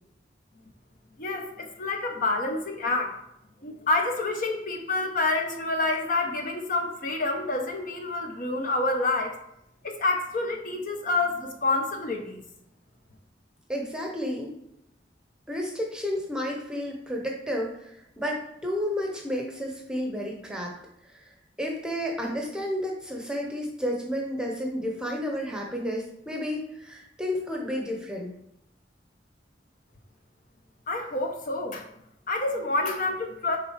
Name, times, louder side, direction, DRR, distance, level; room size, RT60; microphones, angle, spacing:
voice 1, 1.2-3.2 3.6-9.4 9.8-12.4 30.9-31.9 32.3-33.6, left 2 dB, 50° left, 3 dB, 0.8 m, -28 dB
voice 2, 13.7-14.5 15.5-20.7 21.1-21.2 21.6-28.3, equal, 5° right, 0 dB, 0.8 m, -31 dB
6.7 x 3.7 x 4.6 m, 0.81 s
head